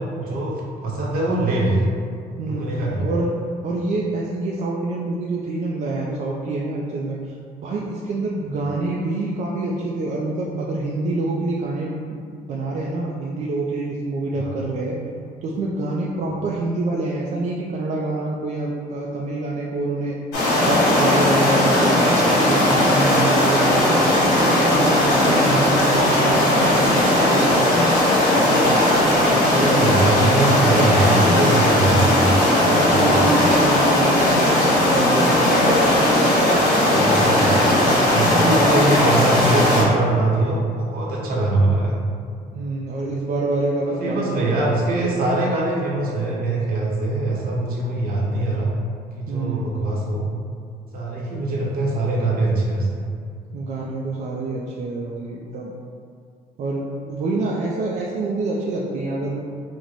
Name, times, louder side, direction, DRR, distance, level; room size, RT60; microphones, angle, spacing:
voice 1, 0.0-1.8 2.4-3.1 14.4-14.5 29.6-32.3 32.6-33.2 36.9-37.5 38.1-42.0 43.9-48.7 49.1-50.2 50.9-53.0, right 2 dB, 60° right, -3 dB, 0.8 m, -22 dB
voice 2, 3.0-3.4 3.6-7.3 7.6-15.0 15.4-20.2 20.6-27.7 28.4-30.3 31.8-32.2 32.7-35.7 37.8-38.1 38.5-38.6 42.5-45.2 49.3-49.7 53.5-55.7 56.6-59.4, right 2 dB, 45° right, -3 dB, 0.4 m, -27 dB
sound 1, 20.3-39.8, left 1 dB, 85° left, 1.1 m, -17 dB
3.0 x 2.1 x 3.8 m, 2.2 s
cardioid pair, 110°, 17 cm